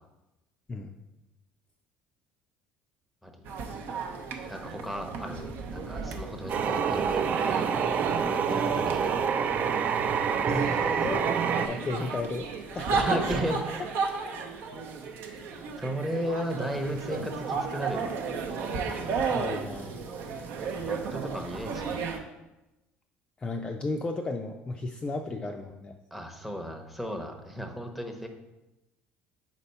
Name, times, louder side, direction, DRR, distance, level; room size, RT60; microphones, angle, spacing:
voice 1, 3.2-3.7 4.4-7.8 8.2-9.2 12.9-13.6 15.8-18.1 20.6-22.1 26.1-28.3, equal, 5° right, 4 dB, 0.8 m, -35 dB
sound 1, 3.4-22.2, right 5 dB, 65° right, 0.8 m, -34 dB
sound 2, 6.5-11.7, right 7 dB, 40° right, 0.4 m, -27 dB
voice 2, 10.5-12.5 12.7-13.2 17.1-17.2 19.3-20.0 23.4-26.0, left 3 dB, 20° left, 3 dB, 0.4 m, -34 dB
4.3 x 4.1 x 5.5 m, 0.99 s
cardioid pair, 120°, 4 cm